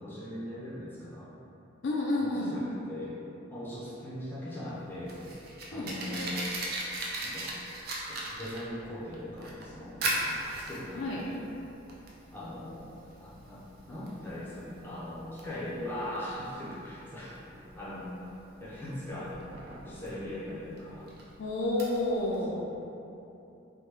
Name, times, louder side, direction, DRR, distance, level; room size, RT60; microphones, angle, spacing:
voice 1, 0.0-1.3 2.2-3.2 3.5-5.2 5.7-6.5 7.2-7.5 8.1-10.0 10.5-11.3 12.3-18.1 18.6-19.3 19.8-21.2 22.5-22.8, left 1 dB, 10° left, -9 dB, 0.5 m, -40 dB
voice 2, 1.8-2.6 5.7-5.9 10.9-11.2 21.4-22.5, left 2 dB, 60° left, -3 dB, 0.3 m, -30 dB
Fire, 4.7-22.4, right 1 dB, 50° right, 0.4 m, -39 dB
3.0 x 2.1 x 3.3 m, 2.9 s
head